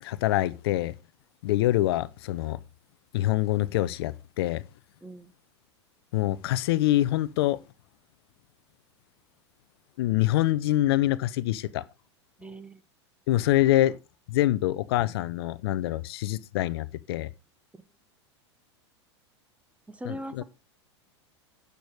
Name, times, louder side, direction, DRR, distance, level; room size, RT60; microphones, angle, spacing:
voice 1, 0.0-0.9 1.4-2.6 3.1-4.6 6.1-7.6 10.0-11.8 13.3-14.0 14.3-17.3 20.1-20.4, left 15 dB, 60° left, 0.6 m, -25 dB
voice 2, 5.0-5.3 12.4-12.8 19.9-20.4, right 1 dB, 10° right, 1.2 m, -40 dB
10.5 x 6.9 x 4.7 m
figure-of-eight pair, 90°, 15 cm